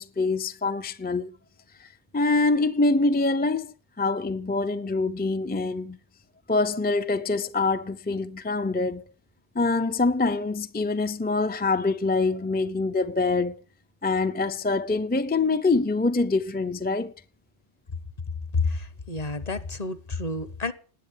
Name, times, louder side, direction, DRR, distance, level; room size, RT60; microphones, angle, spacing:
voice 1, 0.0-1.3 1.8-6.0 6.5-9.1 9.5-13.6 14.0-17.1, left 3 dB, 15° left, 0.4 m, -25 dB
voice 2, 18.5-20.7, left 3 dB, 35° left, 1.1 m, -29 dB
19.0 x 8.2 x 8.4 m
omnidirectional pair, 1.2 m